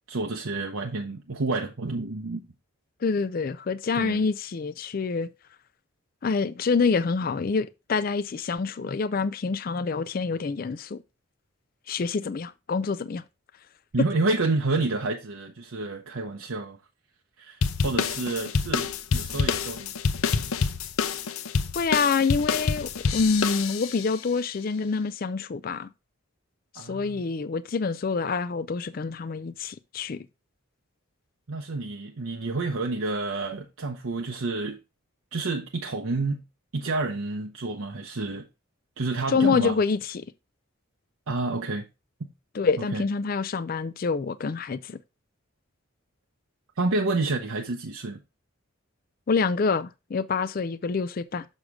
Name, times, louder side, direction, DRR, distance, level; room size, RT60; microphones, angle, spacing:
voice 1, 0.1-2.4 3.9-4.2 13.9-16.8 17.4-19.9 26.8-27.2 31.5-34.8 35.3-36.4 36.7-38.5 39.0-39.8 41.3-41.8 42.2-42.3 42.8-43.0 46.8-48.2, right 3 dB, 70° right, 0.8 m, -29 dB
voice 2, 3.0-5.3 6.2-11.0 11.9-13.2 21.8-25.9 26.7-30.2 39.3-40.3 42.5-45.0 49.3-51.5, left 4 dB, 40° left, 0.4 m, -26 dB
sound 1, 17.6-24.1, left 5 dB, 80° left, 0.7 m, -27 dB
6.4 x 6.4 x 3.6 m
head